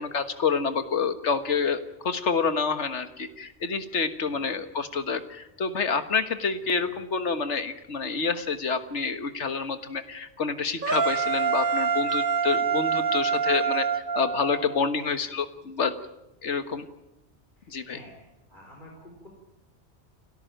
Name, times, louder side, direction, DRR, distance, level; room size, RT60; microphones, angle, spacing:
voice 1, 0.0-15.9 16.4-16.9 17.7-18.0, left 5 dB, 80° left, 10 dB, 1.7 m, -28 dB
voice 2, 4.3-4.6 6.8-6.9 17.6-19.3, equal, 45° left, 0 dB, 4.5 m, -50 dB
sound 1, 10.8-14.9, right 6 dB, 50° right, 1.2 m, -26 dB
29.5 x 13.0 x 9.1 m, 0.92 s
omnidirectional pair, 1.2 m